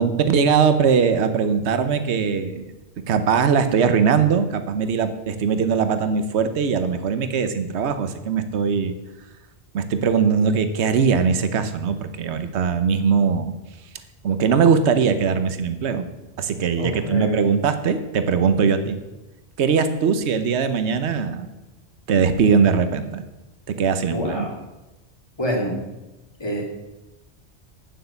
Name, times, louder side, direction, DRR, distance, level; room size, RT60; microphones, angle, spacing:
voice 1, 0.0-2.7 3.1-8.9 9.7-13.5 14.2-16.0 16.4-19.0 19.6-21.5 22.1-23.2 23.7-24.5, right 6 dB, 75° right, 10 dB, 1.1 m, -20 dB
voice 2, 16.8-17.4 24.1-24.6 25.4-25.8 26.4-26.6, equal, 20° left, -2 dB, 2.8 m, -26 dB
9.2 x 7.5 x 7.0 m, 1.0 s
omnidirectional pair, 1.1 m